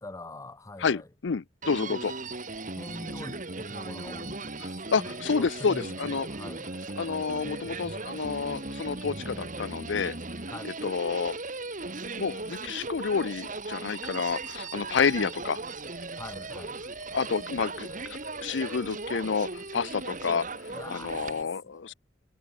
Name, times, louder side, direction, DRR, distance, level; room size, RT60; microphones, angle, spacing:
voice 1, 0.0-1.1 2.8-6.7 10.5-10.8 16.2-16.8 17.1-17.2 17.6-17.8 20.7-21.8, left 2 dB, 20° left, 0.8 m, -44 dB
voice 2, 0.8-2.1 4.6-6.3 7.0-10.2 10.6-11.4 12.2-15.6 17.1-21.9, left 5 dB, 80° left, 0.5 m, -29 dB
Human voice, 1.6-21.4, right 3 dB, 45° right, 2.3 m, -38 dB
sound 1, 2.2-21.4, left 11 dB, 40° left, 3.1 m, -56 dB
head